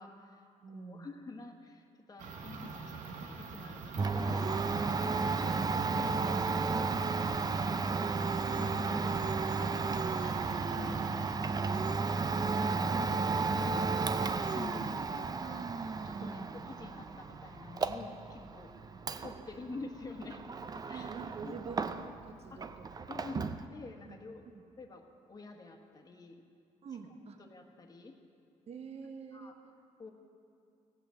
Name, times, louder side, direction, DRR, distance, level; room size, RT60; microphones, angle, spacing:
voice 1, 0.0-7.2 8.3-9.7 10.7-11.4 12.2-13.3 13.5-15.7 16.0-18.7 19.2-20.5 20.9-21.1 21.4-21.5 22.5-22.6 23.1-24.4 24.8-26.4 27.4-28.1 29.3-29.5 30.0-30.1, left 3 dB, 30° left, 3 dB, 1.4 m, -48 dB
voice 2, 0.6-1.2 10.1-11.0 16.2-16.5 18.9-19.0 20.9-22.7 24.1-24.2 24.4-24.6 26.8-27.4 28.7-29.7, right 5 dB, 50° right, 5 dB, 1.1 m, -47 dB
sound 1, 2.2-11.3, right 4 dB, 75° right, 1.2 m, -45 dB
Domestic sounds home sounds, 4.0-22.3 22.6-23.6, right 4 dB, 30° right, 0.5 m, -33 dB
16.5 x 6.0 x 7.6 m, 2.4 s
cardioid pair, 95°, 13 cm